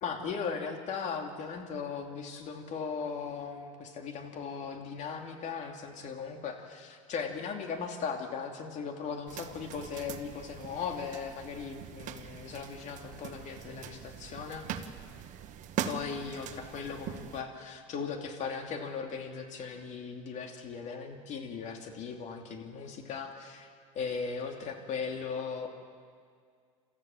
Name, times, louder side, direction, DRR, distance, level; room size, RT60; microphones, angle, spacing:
voice 1, 0.0-14.7 15.8-23.7 23.9-25.7, left 5 dB, 45° left, 3 dB, 2.9 m, -38 dB
sound 1, 9.3-17.4, right 9 dB, 50° right, 1.4 m, -42 dB
27.5 x 14.0 x 7.3 m, 2.1 s
supercardioid pair, 105°, 17 cm